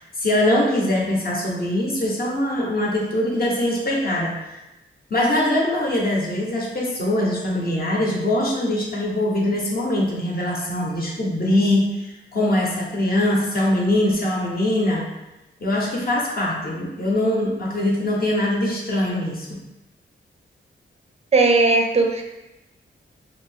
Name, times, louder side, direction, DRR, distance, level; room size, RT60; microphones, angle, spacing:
voice 1, 0.0-4.6 5.1-15.1 15.6-19.6, left 1 dB, 45° left, -3 dB, 0.7 m, -22 dB
voice 2, 21.3-22.2, right 3 dB, 30° right, 2 dB, 0.4 m, -17 dB
2.6 x 2.5 x 3.4 m, 0.98 s
wide cardioid pair, 115°, 21 cm